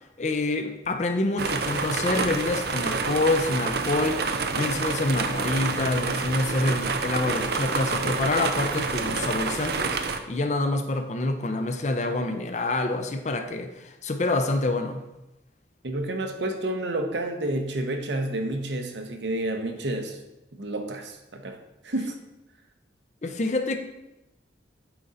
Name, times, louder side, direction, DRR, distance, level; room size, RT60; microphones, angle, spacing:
voice 1, 0.2-4.3 4.5-10.0 10.3-15.0 23.2-23.8, left 2 dB, 40° left, 7 dB, 0.6 m, -27 dB
sound 1, 1.4-10.2, right 4 dB, 55° right, 0.5 m, -28 dB
voice 2, 15.8-20.2 20.6-21.6 21.8-22.1, right 1 dB, 70° right, 4 dB, 0.9 m, -30 dB
8.8 x 3.8 x 4.1 m, 0.94 s
head